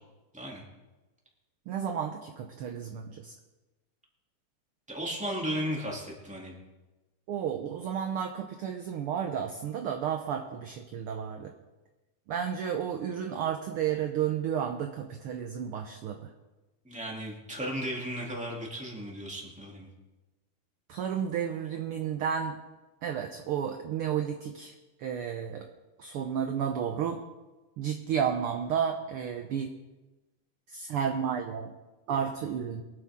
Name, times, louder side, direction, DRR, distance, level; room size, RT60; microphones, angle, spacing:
voice 1, 1.7-3.3 7.3-11.5 12.3-16.2 20.9-22.6 23.0-24.7 25.0-25.7 26.0-27.2 27.8-29.7 30.7-31.7 32.1-32.8, right 8 dB, 70° right, 4 dB, 1.3 m, -32 dB
voice 2, 4.9-6.6 16.8-19.9, equal, 5° right, -3 dB, 2.4 m, -35 dB
23.0 x 8.9 x 3.7 m, 1.1 s
omnidirectional pair, 3.4 m